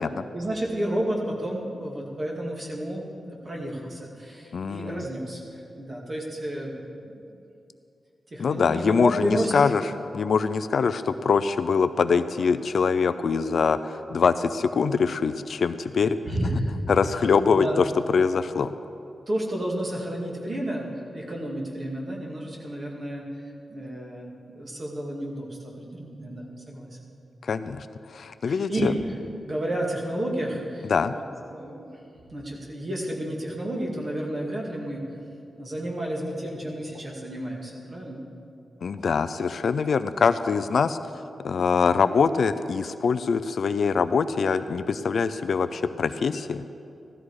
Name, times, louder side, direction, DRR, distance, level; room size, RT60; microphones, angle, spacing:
voice 1, 0.3-6.8 7.1-7.4 8.3-9.6 11.0-11.1 16.3-16.8 17.5-17.8 19.3-23.3 23.7-27.0 28.5-28.9 29.4-31.2 31.5-31.9 32.3-35.1 35.6-38.2, right 1 dB, 30° right, -2 dB, 2.2 m, -31 dB
voice 2, 4.5-5.0 8.4-9.8 10.1-16.2 16.9-18.7 27.4-28.9 30.9-31.1 38.8-41.0 41.4-46.6, left 5 dB, 55° left, 12 dB, 0.4 m, -23 dB
15.5 x 13.0 x 4.8 m, 2.7 s
wide cardioid pair, 165°, 0 cm